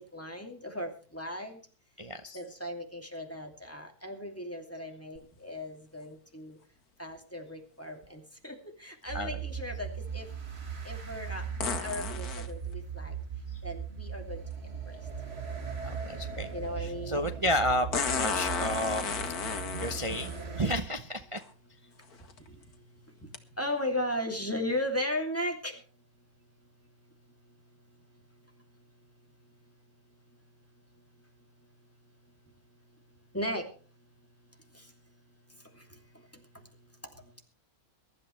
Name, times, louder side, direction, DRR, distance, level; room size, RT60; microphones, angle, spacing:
voice 1, 0.0-1.6 2.3-6.6 7.0-10.3 10.8-13.1 13.6-14.4 14.9-15.0 16.5-17.3 23.6-25.8 33.3-33.7, left 1 dB, 10° left, 2 dB, 2.7 m, -36 dB
voice 2, 2.0-2.4 9.1-9.4 15.8-16.5 16.8-19.1 19.8-21.4, equal, 25° right, 7 dB, 0.7 m, -31 dB
sound 1, 5.2-5.3 11.6-12.5 14.5-14.6 17.9-20.4 21.4-21.5 22.1-22.4 23.3-23.4, left 6 dB, 80° left, 2.0 m, -33 dB
sound 2, 9.1-20.8, right 6 dB, 45° right, 2.0 m, -38 dB
22.5 x 12.0 x 3.3 m, 0.40 s
omnidirectional pair, 1.6 m